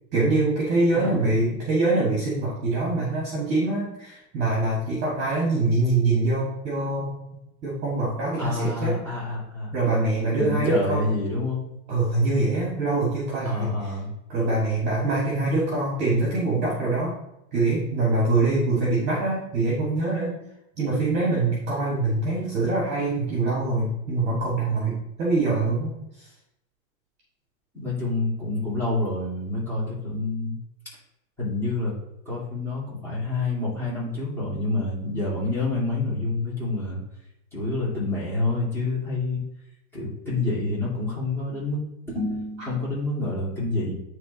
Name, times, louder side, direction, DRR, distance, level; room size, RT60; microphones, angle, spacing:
voice 1, 0.1-7.1 7.6-9.0 9.7-11.0 11.9-13.9 14.3-17.1 17.5-20.3 20.8-26.3, right 2 dB, 25° right, -5 dB, 1.8 m, -24 dB
voice 2, 0.9-1.3 8.4-9.7 10.3-11.6 13.4-14.1 27.7-30.6 31.4-31.9 32.3-37.0 37.5-39.4 39.9-41.8 42.1-43.9, left 2 dB, 5° left, -9 dB, 2.4 m, -27 dB
9.4 x 3.3 x 4.0 m, 0.88 s
supercardioid pair, 170°, 41 cm